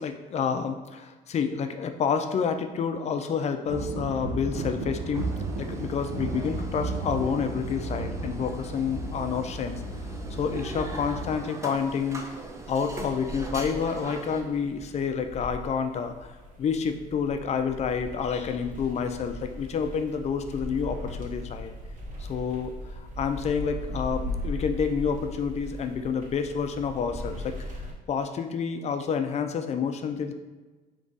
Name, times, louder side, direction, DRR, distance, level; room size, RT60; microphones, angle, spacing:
voice 1, 0.0-5.3 5.6-9.8 10.4-12.2 12.7-16.3 16.6-21.7 22.2-27.7 28.1-30.3, left 6 dB, 40° left, 7 dB, 0.4 m, -29 dB
sound 1, 3.7-11.4, right 2 dB, 85° right, 0.6 m, -34 dB
sound 2, 5.1-14.4, right 2 dB, 15° right, 0.5 m, -42 dB
sound 3, 11.7-27.9, left 1 dB, 50° right, 1.0 m, -39 dB
3.9 x 3.0 x 3.6 m, 1.3 s
cardioid pair, 110°, 17 cm